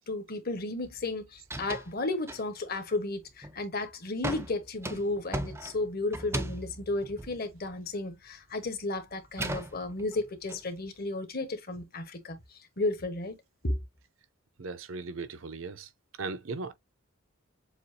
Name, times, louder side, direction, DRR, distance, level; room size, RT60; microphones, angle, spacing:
voice 1, 0.0-13.4 13.6-13.8, left 2 dB, 50° left, 1.2 m, -33 dB
sound 1, 0.8-1.1 1.4-1.9 2.3-2.8 3.2-3.7 4.2-8.3 8.6-10.6, right 1 dB, 10° right, 0.5 m, -38 dB
voice 2, 14.6-15.9 16.2-16.7, right 3 dB, 75° right, 0.7 m, -37 dB
7.1 x 2.4 x 2.8 m
head